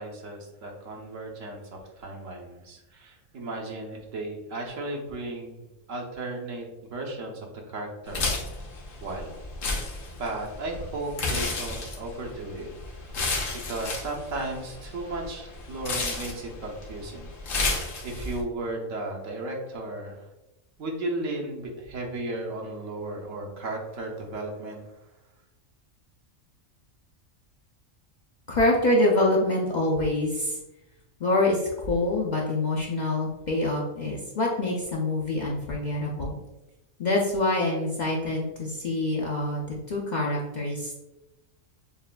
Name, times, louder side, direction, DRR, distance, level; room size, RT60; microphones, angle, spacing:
voice 1, 0.0-5.6 5.9-8.4 9.0-9.4 9.8-9.9 10.2-12.7 13.7-17.3 18.0-20.3 20.8-24.9, right 2 dB, 75° right, 0 dB, 1.2 m, -35 dB
sound 1, 8.1-18.4, left 3 dB, 75° left, 1.3 m, -32 dB
voice 2, 28.5-30.6 31.2-36.4 37.0-41.0, left 2 dB, 55° left, -3 dB, 0.5 m, -25 dB
6.9 x 2.5 x 2.2 m, 0.99 s
omnidirectional pair, 1.4 m